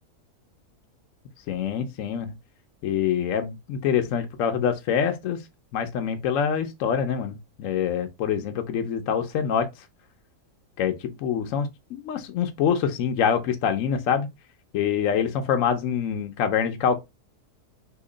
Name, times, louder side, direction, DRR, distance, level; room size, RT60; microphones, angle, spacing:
voice 1, 1.5-2.3 2.8-5.4 5.7-9.7 10.8-14.3 14.7-17.0, left 8 dB, 65° left, 0.9 m, -25 dB
2.9 x 2.7 x 3.7 m
omnidirectional pair, 1.7 m